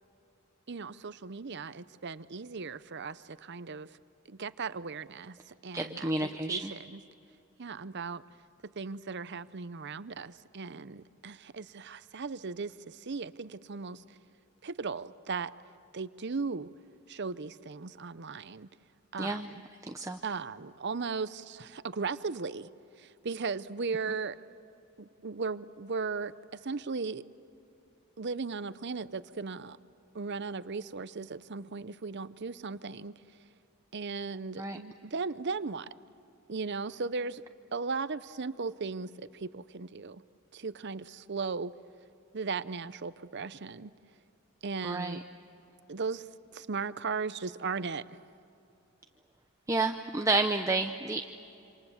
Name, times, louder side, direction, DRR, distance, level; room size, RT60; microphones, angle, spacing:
voice 1, 0.7-3.9 4.3-7.0 7.6-8.2 8.8-14.0 14.6-15.5 15.9-16.7 17.1-18.7 19.1-19.6 20.2-22.7 23.0-24.4 25.0-27.2 28.2-29.8 30.1-33.1 33.9-35.9 36.5-37.4 37.7-40.2 40.5-41.7 42.3-43.9 44.6-45.2 45.9-48.2, right 4 dB, 50° right, 15 dB, 0.7 m, -37 dB
voice 2, 5.7-6.7 19.2-19.5 19.8-20.2 34.6-34.8 44.8-45.2 49.7-51.2, right 2 dB, 15° right, 5 dB, 0.7 m, -30 dB
27.5 x 26.5 x 7.2 m, 2.8 s
head